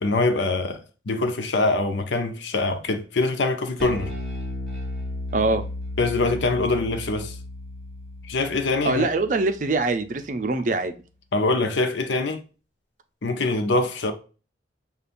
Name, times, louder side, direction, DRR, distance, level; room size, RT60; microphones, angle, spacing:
voice 1, 0.0-4.1 6.0-7.4 8.2-9.1 11.3-12.4 13.2-14.1, left 2 dB, 85° left, 0.7 m, -24 dB
Bass guitar, 3.8-10.2, left 1 dB, ahead, 1.0 m, -35 dB
voice 2, 5.3-5.6 8.8-10.9, right 3 dB, 45° right, 0.4 m, -23 dB
6.7 x 2.4 x 2.5 m
head